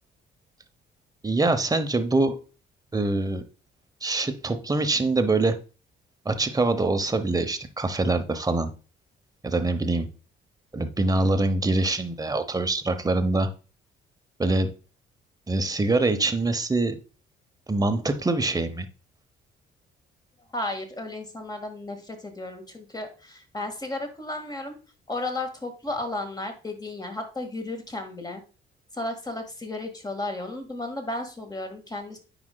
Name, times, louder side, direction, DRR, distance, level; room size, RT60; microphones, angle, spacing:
voice 1, 1.2-2.4 2.9-3.4 4.0-5.6 6.2-8.7 9.4-10.1 10.7-13.5 14.4-14.7 15.5-16.9 17.7-18.9, right 2 dB, 20° right, 9 dB, 0.9 m, -24 dB
voice 2, 20.5-24.8 25.1-28.4 28.9-32.2, left 2 dB, 20° left, 5 dB, 1.8 m, -34 dB
9.4 x 5.0 x 2.3 m, 0.34 s
cardioid pair, 90°, 20 cm